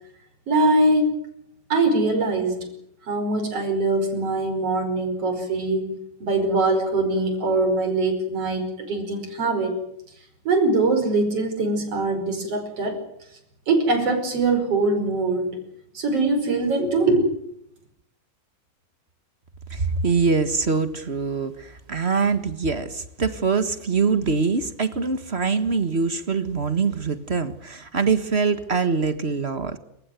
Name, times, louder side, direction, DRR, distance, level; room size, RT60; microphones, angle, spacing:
voice 1, 0.5-1.2 1.7-2.7 3.1-9.8 10.5-13.0 13.7-15.6 15.9-17.3, right 2 dB, 50° right, 6 dB, 6.1 m, -22 dB
voice 2, 19.7-29.8, right 4 dB, 35° right, 10 dB, 1.1 m, -23 dB
28.0 x 16.0 x 9.2 m, 0.76 s
omnidirectional pair, 3.5 m